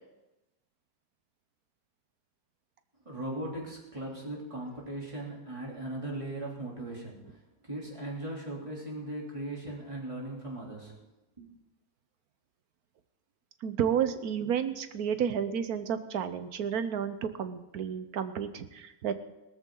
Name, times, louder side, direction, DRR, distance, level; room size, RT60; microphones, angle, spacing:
voice 1, 3.0-11.0 11.4-11.5, right 1 dB, 20° right, -3 dB, 3.4 m, -38 dB
voice 2, 13.6-19.1, right 8 dB, 75° right, 11 dB, 1.4 m, -31 dB
18.0 x 13.5 x 3.9 m, 1.0 s
omnidirectional pair, 1.6 m